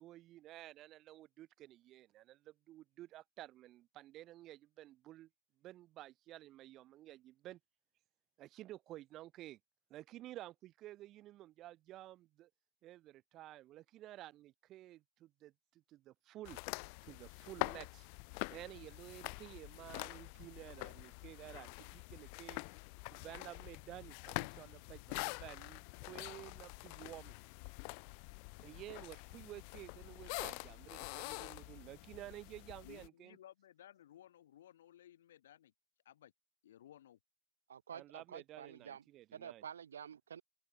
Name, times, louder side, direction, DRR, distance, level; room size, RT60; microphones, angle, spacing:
voice 1, 0.0-5.3 5.6-7.6 8.4-9.6 9.9-12.5 12.8-16.6 17.0-18.1 18.5-22.6 23.1-27.4 28.6-33.4 37.9-39.7, right 15 dB, 20° right, 0.5 m, -53 dB
sound 1, 16.4-33.1, left 40 dB or more, 30° left, 0.9 m, -46 dB
voice 2, 32.8-35.7 36.0-36.3 36.6-37.2, left 11 dB, 55° left, 2.9 m, -59 dB
voice 3, 37.7-39.0 39.3-40.4, right 8 dB, 80° right, 0.4 m, -49 dB
open air
hypercardioid pair, 165°, 0 cm